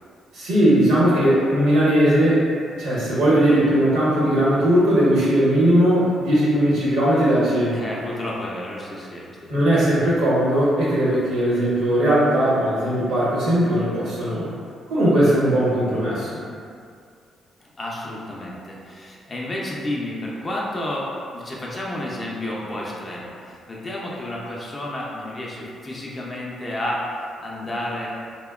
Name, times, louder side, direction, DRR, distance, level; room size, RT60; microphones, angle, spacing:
voice 1, 0.3-2.4 2.8-7.8 9.5-14.5 14.9-16.4, right 1 dB, 80° right, -9 dB, 0.9 m, -19 dB
voice 2, 7.7-9.5 17.6-27.0 27.4-28.1, left 1 dB, 25° left, -4 dB, 0.4 m, -31 dB
2.7 x 2.1 x 2.3 m, 2.3 s
cardioid pair, 125°, 0 cm